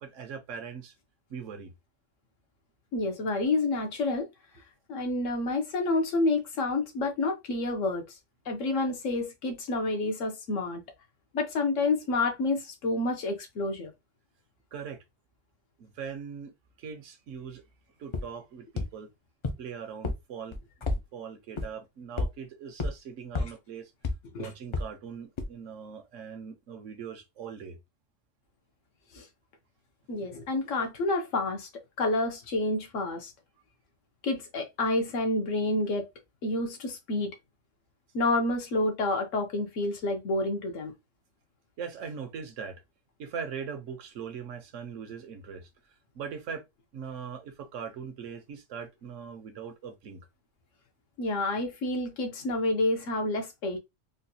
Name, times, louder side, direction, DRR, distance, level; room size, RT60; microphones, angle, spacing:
voice 1, 0.0-0.9 1.3-1.7 14.7-15.0 15.8-16.5 16.8-17.6 18.0-19.1 19.6-20.6 21.1-23.9 24.4-27.8 41.8-42.8 43.2-45.7 46.1-46.6 46.9-50.2, right 6 dB, 75° right, 1.1 m, -40 dB
voice 2, 2.9-4.3 4.9-8.0 8.5-10.8 11.3-13.9 24.3-24.5 29.1-29.2 30.1-31.7 32.0-33.3 34.2-36.1 36.4-37.3 38.1-40.9 51.2-53.8, left 2 dB, 80° left, 1.3 m, -29 dB
sound 1, 18.1-18.2 18.8-18.9 19.4-19.5 20.0-20.1 20.5-21.0 21.6-21.7 22.2-22.3 22.8-22.9 23.4-23.5 24.0-24.1 24.7-24.8 25.4-25.5, left 3 dB, 45° left, 0.4 m, -28 dB
3.9 x 2.3 x 2.7 m
omnidirectional pair, 1.3 m